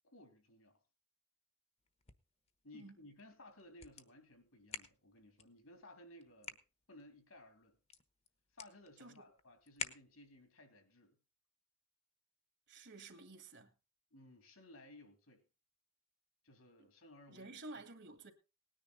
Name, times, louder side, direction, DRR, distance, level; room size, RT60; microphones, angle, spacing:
voice 1, 0.0-0.8 2.6-6.6 6.9-7.8 8.5-11.2 14.1-15.4 16.4-17.8, left 1 dB, 80° left, 3.4 m, -59 dB
sound 1, 1.8-10.5, left 6 dB, 30° left, 1.1 m, -52 dB
voice 2, 12.7-13.7 16.8-16.9 17.3-18.3, right 2 dB, 60° right, 2.3 m, -52 dB
18.5 x 10.0 x 4.1 m
head